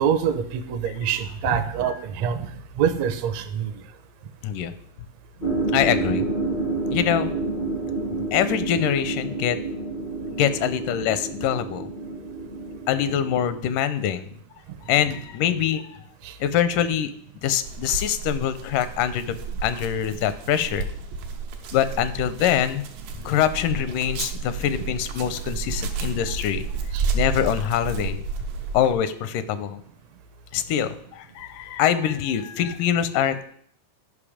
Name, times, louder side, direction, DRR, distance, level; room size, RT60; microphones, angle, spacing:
voice 1, 0.0-2.5 2.8-3.7 16.2-16.3 24.6-24.7 26.9-27.1, right 8 dB, 75° right, 6 dB, 1.6 m, -25 dB
voice 2, 4.4-4.7 5.7-6.3 6.9-7.3 8.3-9.6 10.3-11.9 12.9-14.3 14.9-16.0 16.4-17.1 17.4-19.4 19.6-20.9 21.7-22.8 23.3-26.7 27.1-28.2 28.7-29.8 30.5-33.4, left 9 dB, 85° left, 13 dB, 2.2 m, -24 dB
sound 1, 5.4-13.6, right 3 dB, 55° left, 0.5 m, -29 dB
sound 2, 17.6-28.9, right 4 dB, 90° right, 2.6 m, -31 dB
12.0 x 5.5 x 4.9 m, 0.63 s
omnidirectional pair, 3.7 m